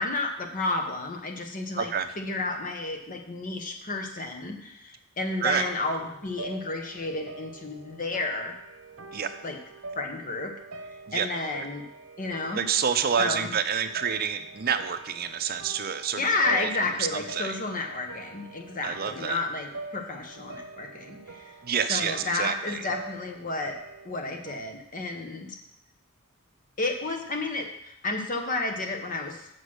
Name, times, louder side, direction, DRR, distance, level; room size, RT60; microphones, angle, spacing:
voice 1, 0.0-8.5 9.4-9.6 9.9-10.5 10.8-11.8 12.2-12.7 13.2-13.5 16.2-21.6 21.9-23.8 24.0-25.6 26.8-29.5, left 2 dB, 40° left, 3 dB, 1.1 m, -31 dB
voice 2, 1.8-2.1 5.4-5.6 9.1-9.3 11.1-11.3 12.5-16.7 17.1-17.5 18.8-19.4 21.6-22.9, right 7 dB, 45° right, 9 dB, 0.6 m, -28 dB
sound 1, 5.3-24.6, right 2 dB, 65° right, 0.9 m, -45 dB
6.6 x 6.2 x 6.3 m, 0.78 s
head